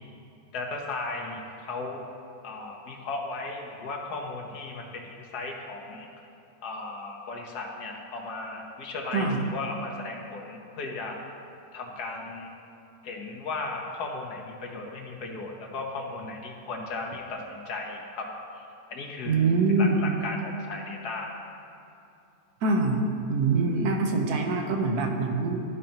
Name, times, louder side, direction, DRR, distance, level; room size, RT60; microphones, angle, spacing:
voice 1, 0.5-2.0 2.4-6.1 6.6-11.2 11.7-12.5 13.0-18.3 18.5-19.5 19.8-21.3, left 3 dB, 85° left, 0 dB, 1.5 m, -36 dB
voice 2, 9.1-9.4 19.3-20.1 22.6-25.6, right 3 dB, 80° right, 2 dB, 1.3 m, -24 dB
12.5 x 5.2 x 2.9 m, 2.7 s
omnidirectional pair, 1.6 m